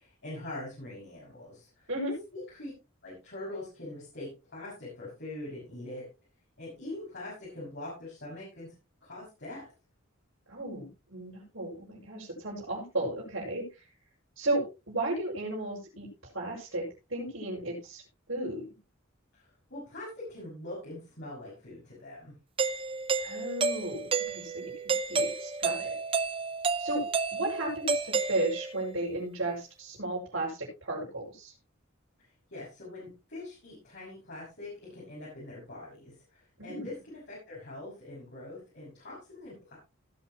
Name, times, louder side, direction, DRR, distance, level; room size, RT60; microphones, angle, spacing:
voice 1, 0.0-1.9 2.3-2.7 3.0-6.1 6.6-8.7 9.0-9.6 19.3-22.3 32.5-39.8, left 2 dB, 55° left, -7 dB, 6.7 m, -43 dB
voice 2, 10.5-13.8 14.4-16.1 16.3-18.0 18.3-18.6 23.2-25.9 26.8-27.0 27.3-31.5 36.6-36.9, right 2 dB, 60° right, -7 dB, 6.2 m, -34 dB
Doorbell, 22.6-28.9, right 4 dB, 25° right, 0.6 m, -31 dB
18.5 x 9.2 x 3.0 m, 0.29 s
head